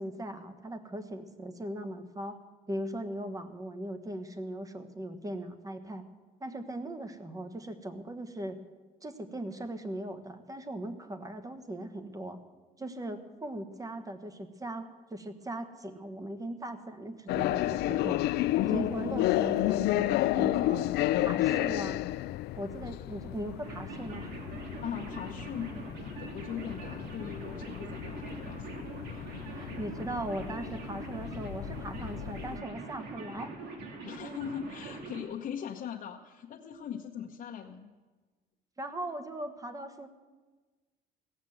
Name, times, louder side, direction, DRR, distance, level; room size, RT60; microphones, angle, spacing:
voice 1, 0.0-2.4 2.7-6.0 6.4-8.6 9.0-12.4 12.8-18.3 18.6-20.8 21.2-22.0 22.6-24.4 29.5-33.6 38.8-40.1, right 1 dB, 20° right, 9 dB, 1.3 m, -39 dB
sound 1, 17.3-32.6, left 15 dB, 75° left, 0.4 m, -32 dB
sound 2, 23.6-35.2, right 3 dB, 80° right, 2.4 m, -43 dB
voice 2, 24.8-29.7 34.0-37.9, left 8 dB, 55° left, 0 dB, 0.9 m, -41 dB
16.5 x 7.3 x 7.8 m, 1.3 s
cardioid pair, 110°, 17 cm